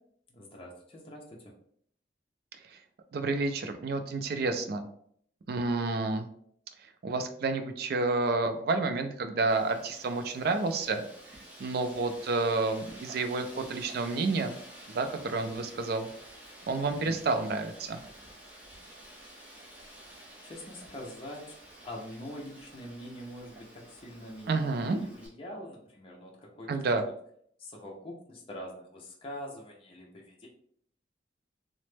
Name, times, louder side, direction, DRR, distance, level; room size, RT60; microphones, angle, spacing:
voice 1, 0.3-1.5 17.1-17.2 20.4-21.5 21.8-24.5 24.9-27.0 27.6-30.5, left 1 dB, 30° left, -2 dB, 0.5 m, -44 dB
voice 2, 3.1-4.8 5.5-6.3 7.0-11.0 11.6-14.5 14.9-16.1 16.7-18.0 24.5-25.0 26.7-27.0, right 3 dB, 60° right, 7 dB, 0.4 m, -29 dB
Wind, 9.5-25.3, right 1 dB, 10° right, 0.8 m, -51 dB
3.0 x 2.0 x 3.2 m, 0.65 s
head